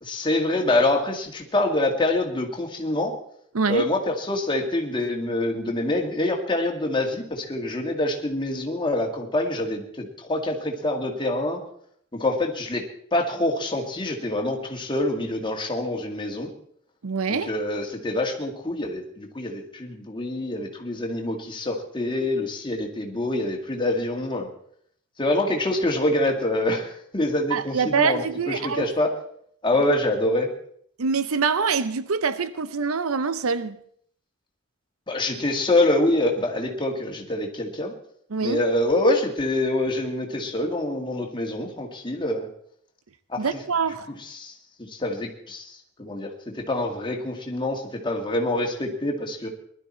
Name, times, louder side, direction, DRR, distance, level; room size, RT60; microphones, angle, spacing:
voice 1, 0.0-3.1 3.7-11.6 12.1-12.9 13.1-16.5 17.3-24.5 25.2-29.1 29.6-30.5 35.1-37.9 38.4-42.5 43.3-43.4 44.3-44.5 44.9-49.5, left 1 dB, 20° left, 2.0 m, -25 dB
voice 2, 3.5-3.9 17.0-17.5 27.5-29.0 31.0-33.8 38.3-38.6 43.4-44.1, right 5 dB, 80° right, 0.7 m, -25 dB
20.0 x 12.0 x 4.4 m
head